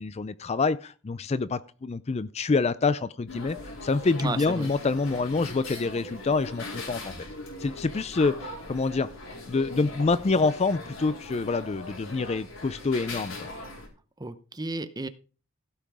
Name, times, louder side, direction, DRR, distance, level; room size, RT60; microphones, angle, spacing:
voice 1, 0.0-3.6 3.8-7.1 7.6-9.1 9.5-13.5, left 3 dB, 30° left, 0.4 m, -26 dB
sound 1, 3.3-13.9, left 2 dB, 80° left, 4.2 m, -40 dB
voice 2, 4.2-4.8 14.2-15.1, right 2 dB, 20° right, 0.8 m, -33 dB
16.0 x 5.7 x 4.9 m
head